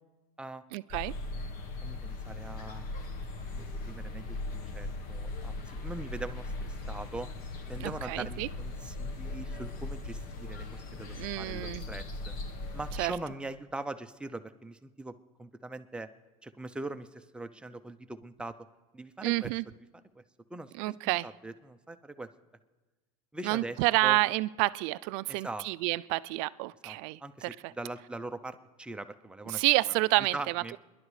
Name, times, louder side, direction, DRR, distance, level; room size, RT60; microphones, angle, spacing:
voice 1, 0.7-1.1 7.8-8.5 11.0-11.8 13.0-13.1 19.2-19.6 20.8-21.3 23.4-27.7 29.5-30.8, right 21 dB, 65° right, 17 dB, 0.4 m, -29 dB
sound 1, 0.9-13.1, left 2 dB, 50° left, 1.3 m, -39 dB
voice 2, 1.8-2.9 3.6-7.3 7.7-12.3 12.7-16.1 16.4-18.6 18.9-19.5 20.2-20.3 20.5-20.9 21.2-22.3 23.3-23.8 24.0-24.2 25.3-25.7 26.8-27.0 27.2-29.6 30.3-30.8, right 2 dB, 5° right, 9 dB, 0.5 m, -41 dB
27.5 x 11.0 x 3.2 m, 1.2 s
supercardioid pair, 125°, 18 cm